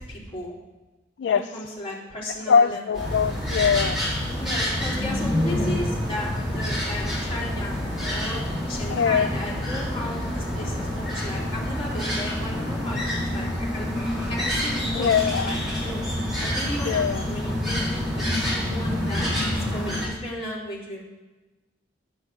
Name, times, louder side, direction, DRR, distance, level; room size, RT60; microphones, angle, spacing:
voice 1, 0.1-0.5 1.3-2.8 4.2-7.8 8.0-8.4 8.7-13.9 14.3-16.0 16.4-21.0, left 1 dB, 30° left, -5 dB, 4.1 m, -35 dB
voice 2, 1.2-1.5 2.5-4.0 8.9-9.3 15.0-15.6 16.9-17.3, left 6 dB, 70° left, 11 dB, 0.3 m, -22 dB
sound 1, 2.9-20.1, left 1 dB, 5° right, 4.1 m, -27 dB
9.3 x 8.6 x 7.9 m, 1.1 s
head